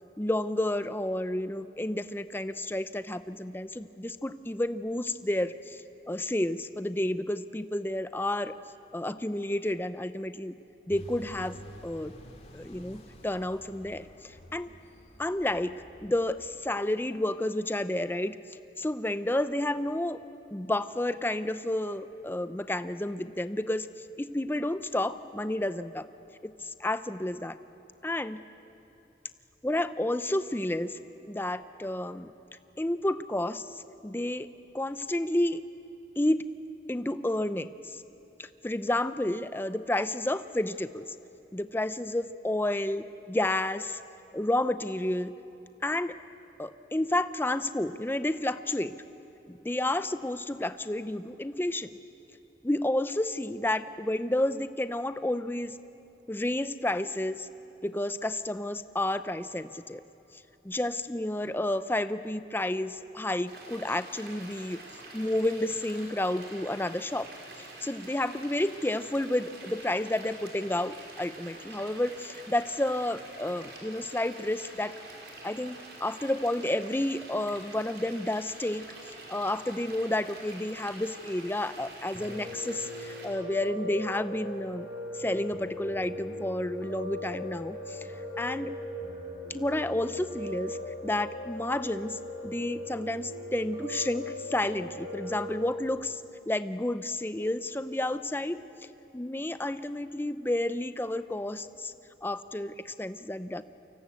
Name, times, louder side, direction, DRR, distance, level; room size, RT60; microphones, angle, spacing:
voice 1, 0.2-5.8 6.1-8.5 8.9-10.5 10.9-11.6 11.8-12.2 12.5-14.7 15.2-18.4 18.8-20.2 20.5-23.9 24.2-26.0 26.4-27.6 28.0-28.4 29.6-31.0 31.3-32.3 32.8-33.6 34.0-34.5 34.7-35.6 36.2-36.5 36.9-38.0 38.4-41.1 41.5-44.0 44.3-45.4 45.8-46.2 46.6-48.9 49.5-51.9 52.6-55.8 56.3-57.5 57.8-60.0 60.6-64.8 65.1-67.3 67.8-74.9 75.4-78.9 79.3-84.9 85.1-88.1 88.4-88.8 89.5-90.8 91.0-98.6 99.1-101.9 102.2-103.7, left 1 dB, 10° left, 12 dB, 0.6 m, -31 dB
sound 1, 10.9-16.7, equal, 35° left, 2.6 m, -50 dB
sound 2, 63.5-83.3, right 2 dB, 75° right, 5.8 m, -47 dB
Piano, 82.1-95.9, left 1 dB, 25° right, 5.7 m, -39 dB
29.5 x 24.5 x 8.3 m, 2.9 s
head